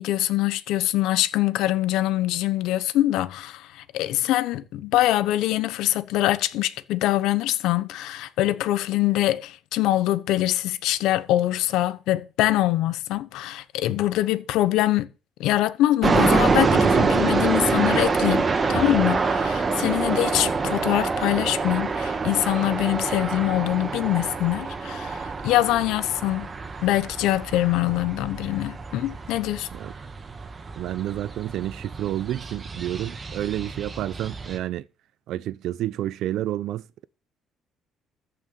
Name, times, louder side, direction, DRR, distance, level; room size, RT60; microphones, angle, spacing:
voice 1, 0.0-15.1 15.4-26.5 26.8-29.7, left 15 dB, 85° left, 0.9 m, -24 dB
sound 1, 16.0-34.6, right 4 dB, 25° right, 1.6 m, -26 dB
voice 2, 30.8-34.9 35.3-36.8, right 13 dB, 70° right, 0.6 m, -29 dB
14.0 x 6.0 x 6.6 m
cardioid pair, 125°, 0 cm